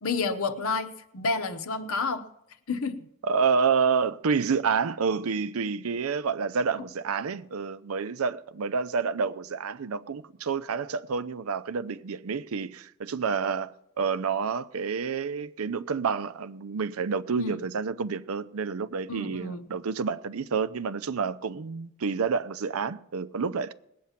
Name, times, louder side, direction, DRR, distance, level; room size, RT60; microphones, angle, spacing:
voice 1, 0.0-2.3 2.7-3.0 17.4-17.5 19.1-19.7, left 4 dB, 70° left, 1.0 m, -30 dB
voice 2, 3.2-23.7, right 5 dB, 80° right, 0.5 m, -29 dB
19.5 x 8.5 x 5.8 m
head